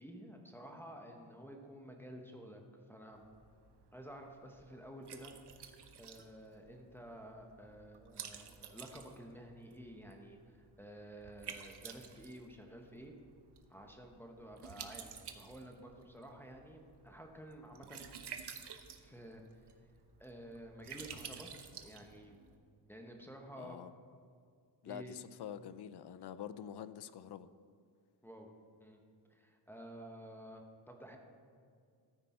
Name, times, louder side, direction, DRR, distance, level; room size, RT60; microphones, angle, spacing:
voice 1, 0.0-2.6 2.9-3.2 3.9-5.3 5.6-13.1 13.7-18.1 19.0-19.4 19.8-19.9 20.2-22.4 22.9-23.8 24.9-25.2 28.2-28.5 28.8-29.0 29.3-31.2, equal, 5° left, 2 dB, 0.9 m, -51 dB
Liquid, 3.1-22.6, right 7 dB, 60° right, 0.9 m, -52 dB
voice 2, 23.6-23.9 24.8-27.5, left 9 dB, 60° left, 15 dB, 0.5 m, -46 dB
14.0 x 9.5 x 4.3 m, 2.3 s
wide cardioid pair, 155°, 47 cm